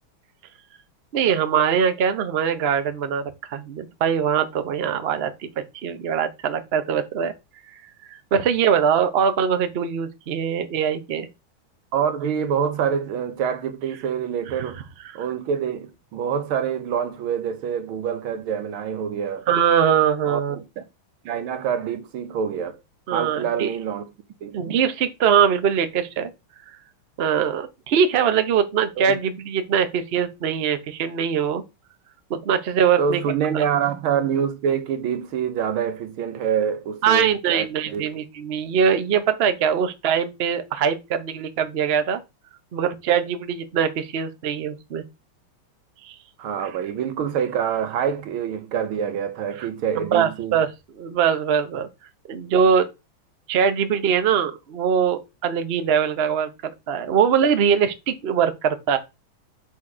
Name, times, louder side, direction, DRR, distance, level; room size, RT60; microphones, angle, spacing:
voice 1, 1.1-7.3 8.3-11.3 19.5-20.6 23.1-23.7 24.5-26.3 27.2-31.6 32.3-33.2 33.5-33.6 37.0-42.2 42.7-45.0 46.0-46.1 49.6-49.7 50.0-50.7 51.0-51.9 52.3-52.9 53.5-59.0, right 7 dB, 70° right, 0.5 m, -22 dB
voice 2, 11.9-14.8 15.2-19.5 20.3-20.8 21.3-22.8 23.1-24.1 24.4-24.8 29.0-29.2 33.0-38.1 46.4-50.6, right 7 dB, 90° right, 1.8 m, -26 dB
6.2 x 4.2 x 4.8 m
omnidirectional pair, 2.3 m